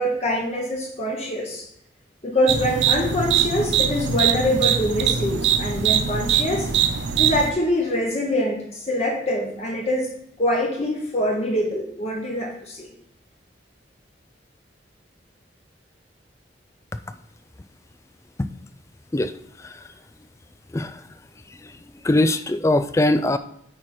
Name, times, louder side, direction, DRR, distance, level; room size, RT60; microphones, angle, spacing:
voice 1, 0.0-1.7 2.2-6.7 7.2-10.1 10.4-12.9, left 1 dB, 35° left, -1 dB, 1.1 m, -24 dB
sound 1, 2.5-7.5, right 8 dB, 80° right, 0.7 m, -22 dB
voice 2, 22.0-23.4, left 1 dB, 15° left, 11 dB, 0.3 m, -21 dB
8.5 x 4.8 x 4.4 m, 0.74 s
head